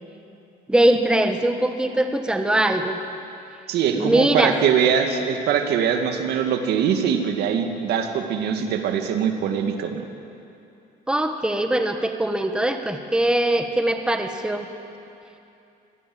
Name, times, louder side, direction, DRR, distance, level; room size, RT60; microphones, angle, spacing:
voice 1, 0.7-3.0 3.9-4.5 11.1-14.7, right 1 dB, 5° right, 6 dB, 1.5 m, -21 dB
voice 2, 3.7-10.0, right 7 dB, 75° right, 5 dB, 2.2 m, -22 dB
24.5 x 17.0 x 7.9 m, 2.7 s
cardioid pair, 110°, 17 cm